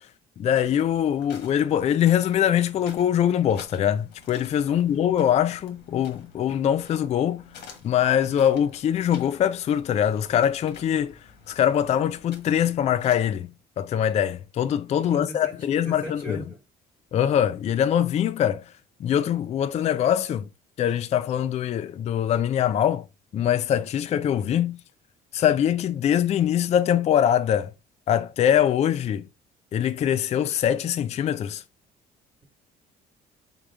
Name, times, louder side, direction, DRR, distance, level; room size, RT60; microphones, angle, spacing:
voice 1, 0.4-7.4 7.8-11.2 11.5-13.5 13.8-16.4 17.1-18.6 19.0-20.5 20.8-23.0 23.3-24.8 25.3-27.7 28.1-29.2 29.7-31.6, left 10 dB, 40° left, 0.4 m, -23 dB
sound 1, 0.5-13.4, left 5 dB, 90° left, 1.4 m, -50 dB
voice 2, 14.9-16.6, right 1 dB, 15° right, 1.3 m, -39 dB
3.9 x 3.6 x 3.3 m
cardioid pair, 110°, 17 cm